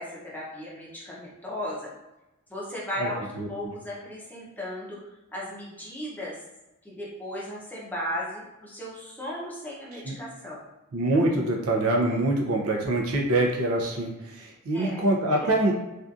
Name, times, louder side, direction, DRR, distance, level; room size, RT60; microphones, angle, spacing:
voice 1, 0.0-1.9 2.5-5.0 5.3-6.4 6.8-10.6 14.7-15.1 15.4-15.5, left 1 dB, 10° left, -6 dB, 0.6 m, -36 dB
voice 2, 10.9-15.7, right 1 dB, 75° right, 0 dB, 0.5 m, -25 dB
2.6 x 2.4 x 2.4 m, 1.0 s
head